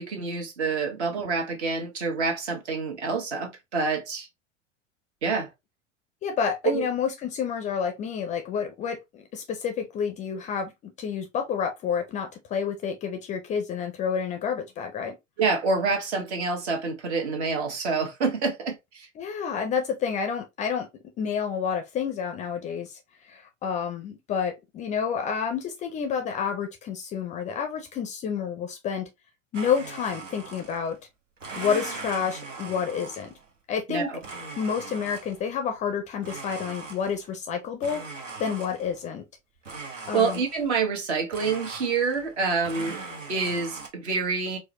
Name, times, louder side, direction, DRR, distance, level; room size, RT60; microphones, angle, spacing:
voice 1, 0.0-4.3 5.2-5.5 6.6-6.8 15.4-19.1 33.9-34.2 39.8-39.9 40.1-43.0 43.3-44.6, right 4 dB, 60° right, 1.3 m, -27 dB
voice 2, 6.2-15.2 19.2-20.9 21.2-29.1 29.5-31.0 31.6-33.3 33.7-34.1 34.6-39.2 40.1-40.4, left 7 dB, 20° left, 0.4 m, -29 dB
Domestic sounds home sounds, 29.5-31.0 31.4-33.5 34.2-35.5 36.2-37.4 37.8-39.0 39.6-40.8 41.3-42.4 42.6-43.9, right 3 dB, 80° right, 0.9 m, -40 dB
4.6 x 2.1 x 2.9 m
figure-of-eight pair, 85°, 38 cm